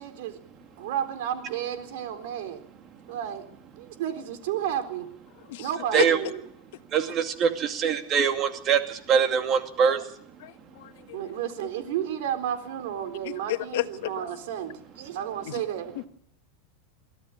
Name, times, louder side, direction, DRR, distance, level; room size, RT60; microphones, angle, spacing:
voice 1, 0.0-2.6 3.1-3.4 3.8-5.1 5.6-6.4 11.1-16.1, right 10 dB, 65° right, 4.0 m, -32 dB
voice 2, 5.5-6.0 10.4-11.3 13.5-14.3 15.5-15.6, left 17 dB, 65° left, 1.3 m, -32 dB
voice 3, 6.9-10.0, right 7 dB, 30° right, 2.5 m, -23 dB
24.0 x 15.0 x 8.5 m
supercardioid pair, 145°, 0 cm